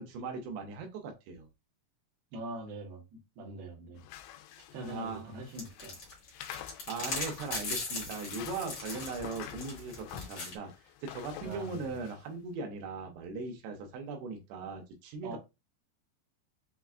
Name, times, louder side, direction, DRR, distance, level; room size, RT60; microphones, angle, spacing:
voice 1, 0.0-1.5 4.9-5.3 6.9-10.7 11.0-15.4, right 4 dB, 85° right, 3.0 m, -39 dB
voice 2, 2.3-4.0 4.6-6.0 11.4-12.0 15.2-15.4, right 1 dB, 70° right, 2.9 m, -43 dB
sound 1, 4.0-12.2, left 12 dB, 85° left, 2.6 m, -48 dB
sound 2, 5.5-10.5, left 3 dB, 50° left, 1.8 m, -39 dB
6.8 x 2.4 x 2.4 m
omnidirectional pair, 4.8 m